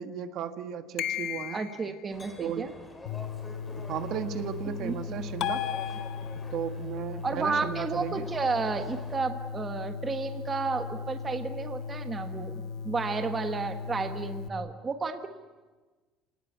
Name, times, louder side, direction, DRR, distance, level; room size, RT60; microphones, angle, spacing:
voice 1, 0.0-1.6 2.4-2.7 3.8-5.7 6.5-8.2, right 8 dB, 55° right, 7 dB, 1.6 m, -35 dB
sound 1, 1.0-1.9 5.4-6.6, left 12 dB, 55° left, 1.0 m, -33 dB
voice 2, 1.5-2.7 4.8-5.4 6.3-6.4 7.2-15.3, right 4 dB, 20° right, 6 dB, 1.4 m, -32 dB
sound 2, 2.1-9.2, left 2 dB, 15° left, 3.8 m, -48 dB
sound 3, 3.1-14.5, left 5 dB, 80° left, 1.2 m, -38 dB
28.0 x 19.0 x 9.5 m, 1.3 s
cardioid pair, 155°, 0 cm